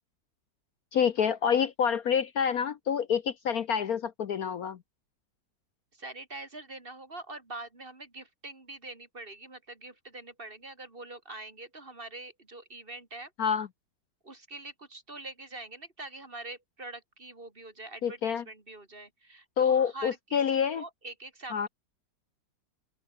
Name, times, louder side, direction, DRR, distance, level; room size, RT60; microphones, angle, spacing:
voice 1, 0.9-4.8 13.4-13.7 18.0-18.4 19.6-20.8 21.5-21.7, left 7 dB, 60° left, 1.3 m, -27 dB
voice 2, 5.9-13.3 14.2-21.7, right 2 dB, 30° right, 2.7 m, -44 dB
omnidirectional pair, 1.9 m